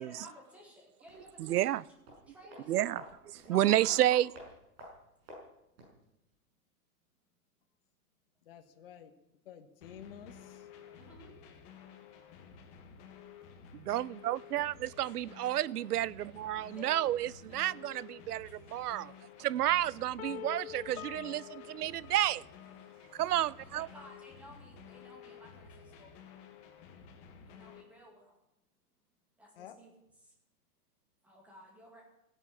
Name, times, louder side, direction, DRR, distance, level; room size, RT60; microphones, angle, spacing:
voice 1, 0.0-1.7 2.3-2.8 3.4-4.2 10.9-11.3 14.8-15.4 16.8-17.1 18.3-18.7 19.6-19.7 23.7-26.2 27.5-28.4 29.4-29.9 30.2-30.3 31.2-32.0, equal, 5° right, 2.2 m, -55 dB
sound 1, 1.0-6.0 6.3-6.4, equal, 40° right, 6.8 m, -54 dB
voice 2, 1.4-1.8 2.7-3.0 3.3-4.3 13.7-19.1 19.4-22.4 23.1-23.9, right 13 dB, 80° right, 0.7 m, -31 dB
voice 3, 8.4-9.1 9.4-10.7 29.5-29.8, left 9 dB, 40° left, 1.3 m, -51 dB
sound 2, 9.8-27.8, left 7 dB, 15° left, 1.1 m, -53 dB
sound 3, 20.2-23.1, left 12 dB, 65° left, 0.8 m, -46 dB
16.0 x 10.5 x 8.6 m
hypercardioid pair, 180°, 46 cm